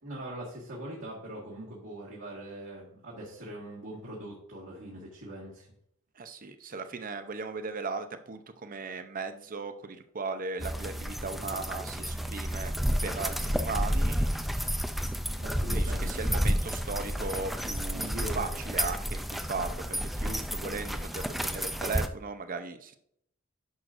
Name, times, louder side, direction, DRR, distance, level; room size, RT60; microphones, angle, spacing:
voice 1, 0.0-5.7 15.4-16.1 17.9-18.5, right 1 dB, 65° right, -5 dB, 1.8 m, -41 dB
voice 2, 6.2-12.7 13.0-14.4 15.7-23.0, right 4 dB, 40° right, 9 dB, 0.6 m, -37 dB
sound 1, 10.6-22.1, equal, ahead, 0.4 m, -31 dB
10.5 x 6.3 x 2.6 m, 0.71 s
head